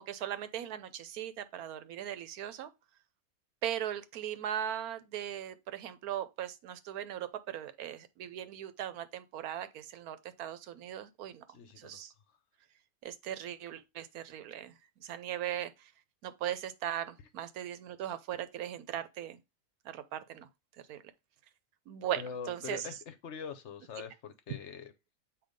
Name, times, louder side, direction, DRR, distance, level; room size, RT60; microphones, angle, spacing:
voice 1, 0.0-2.7 3.6-11.4 11.8-12.1 13.0-15.9 16.2-19.4 19.8-20.5 20.9-21.0 21.9-22.9, right 10 dB, 85° right, 1.2 m, -39 dB
voice 2, 11.5-12.0 22.2-24.9, left 6 dB, 60° left, 0.9 m, -43 dB
7.9 x 2.8 x 5.1 m
omnidirectional pair, 1.5 m